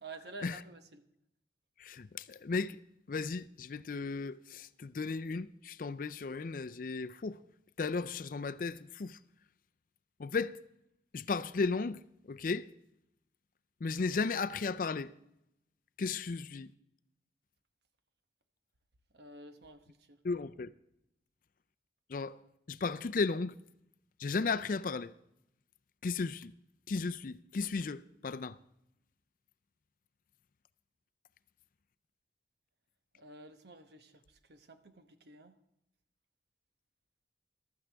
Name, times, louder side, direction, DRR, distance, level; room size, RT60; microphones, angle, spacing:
voice 1, 0.0-1.0 19.1-20.2 33.1-35.5, right 2 dB, 65° right, 1.0 m, -51 dB
voice 2, 1.8-2.8 3.1-7.4 7.8-9.2 10.2-10.6 11.1-12.7 13.8-15.1 16.0-16.7 20.2-20.7 22.1-22.4 22.7-23.6 24.2-25.1 26.0-26.5 26.9-28.6, left 4 dB, 50° left, 0.4 m, -35 dB
15.0 x 12.5 x 3.4 m
head